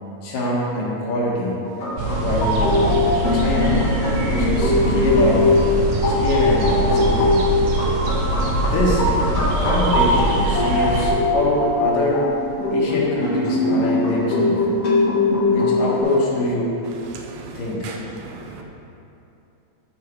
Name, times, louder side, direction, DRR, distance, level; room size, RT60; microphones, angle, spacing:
voice 1, 0.2-1.6 2.2-3.0 3.3-3.9 4.2-5.6 6.0-7.5 8.3-9.0 9.6-12.2 12.7-14.6 15.5-16.7 17.6-18.0, left 1 dB, 90° left, -5 dB, 3.0 m, -24 dB
sound 1, 1.7-16.0, left 2 dB, 60° left, 2.2 m, -20 dB
sound 2, 2.0-11.1, right 2 dB, 65° right, 1.8 m, -23 dB
voice 2, 17.1-18.6, right 4 dB, 90° right, 1 dB, 2.4 m, -37 dB
13.0 x 4.9 x 3.1 m, 2.8 s
omnidirectional pair, 3.7 m